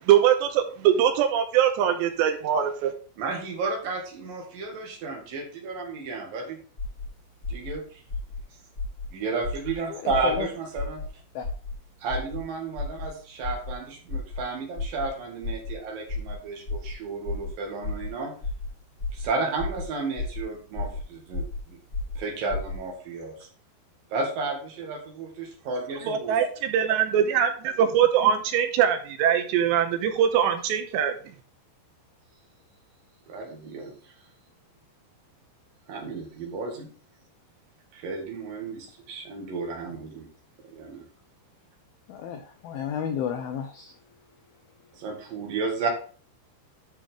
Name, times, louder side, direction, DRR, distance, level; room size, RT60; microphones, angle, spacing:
voice 1, 0.1-2.9 26.1-31.1, right 9 dB, 80° right, 7 dB, 2.8 m, -22 dB
voice 2, 3.2-6.6 7.5-8.0 9.1-11.0 12.0-18.3 19.1-21.8 22.2-23.5 24.1-26.4 33.3-33.9 35.9-36.9 37.9-40.3 40.7-41.0 44.9-45.9, right 3 dB, 55° right, 1 dB, 3.1 m, -32 dB
sound 1, 6.8-7.1 7.4-7.7 8.1-8.4 8.7-9.1 9.4-9.7 10.1-10.4 10.7-11.1 11.4-11.7 12.1-12.4 12.7-13.1 13.4-13.7 14.1-14.4 14.7-15.1 15.4-15.7 16.1-16.3 16.6-16.9 17.2-17.5 17.8-18.1 18.4-18.7 19.0-19.2 19.6-19.8 20.1-20.4 20.7-21.0 21.3-21.6 21.9-22.2 22.5-22.7, left 3 dB, 20° left, 2.3 m, -32 dB
voice 3, 9.9-10.5 11.4-11.5 42.1-43.9, left 8 dB, 85° left, 6 dB, 2.1 m, -32 dB
11.5 x 5.3 x 3.6 m, 0.41 s
omnidirectional pair, 5.3 m